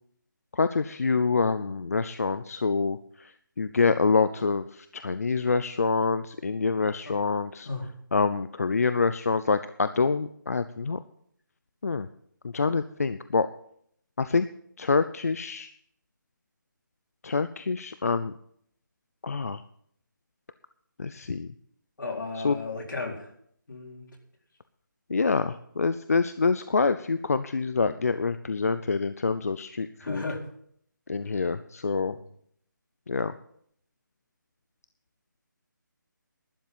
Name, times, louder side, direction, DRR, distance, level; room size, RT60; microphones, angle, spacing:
voice 1, 0.5-3.3 3.6-7.7 8.1-11.0 11.8-12.1 12.4-13.5 14.2-14.5 14.8-15.7 17.2-18.3 19.2-19.6 21.0-21.5 22.4-22.6 25.1-30.2 31.1-32.2 33.1-33.3, left 4 dB, 50° left, 12 dB, 0.5 m, -26 dB
voice 2, 22.0-23.3 23.7-24.0 30.0-30.4, left 3 dB, 75° left, 0 dB, 4.0 m, -34 dB
12.0 x 9.8 x 5.6 m, 0.66 s
hypercardioid pair, 175°, 11 cm